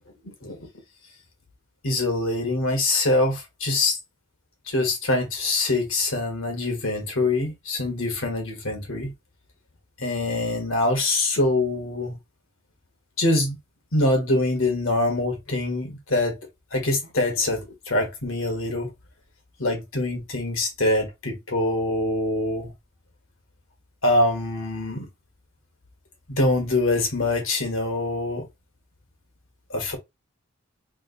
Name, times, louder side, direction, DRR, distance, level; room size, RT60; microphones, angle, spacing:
voice 1, 0.2-0.7 1.8-4.0 4.7-9.1 10.0-12.2 13.2-13.6 13.9-16.4 16.7-18.9 19.6-22.7 24.0-25.1 26.3-28.5 29.7-30.0, left 2 dB, 85° left, 1.6 m, -24 dB
3.7 x 2.7 x 4.1 m
head